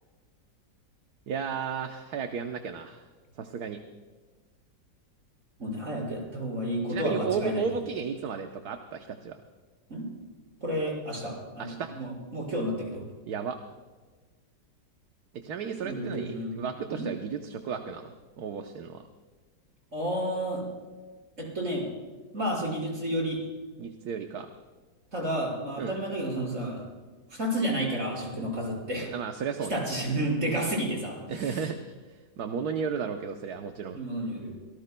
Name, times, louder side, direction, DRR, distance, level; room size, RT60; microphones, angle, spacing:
voice 1, 1.3-3.0 3.4-3.8 6.9-9.4 11.6-11.9 13.3-13.6 15.3-19.0 23.8-24.5 25.8-25.9 29.1-29.8 31.3-31.8 32.1-34.0, right 6 dB, 65° right, 5 dB, 1.4 m, -34 dB
voice 2, 5.6-7.6 9.9-10.1 10.6-13.0 15.8-17.1 19.9-20.6 21.4-21.8 22.3-23.4 25.1-26.8 27.3-29.1 29.7-31.6 33.9-34.5, equal, 45° right, -3 dB, 5.9 m, -31 dB
25.5 x 18.0 x 2.2 m, 1.4 s
omnidirectional pair, 1.9 m